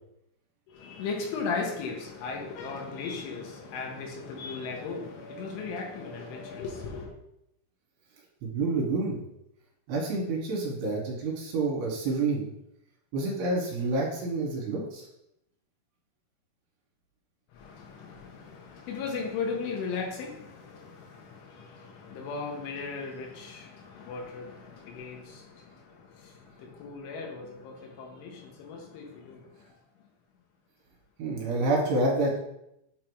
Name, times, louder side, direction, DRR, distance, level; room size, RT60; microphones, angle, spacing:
voice 1, 0.7-7.2 17.5-29.7, left 4 dB, 90° left, 1 dB, 3.5 m, -37 dB
voice 2, 8.4-9.2 9.9-12.5 13.1-15.1 31.2-32.4, right 2 dB, 70° right, -3 dB, 3.1 m, -28 dB
8.3 x 2.9 x 4.7 m, 0.80 s
omnidirectional pair, 5.4 m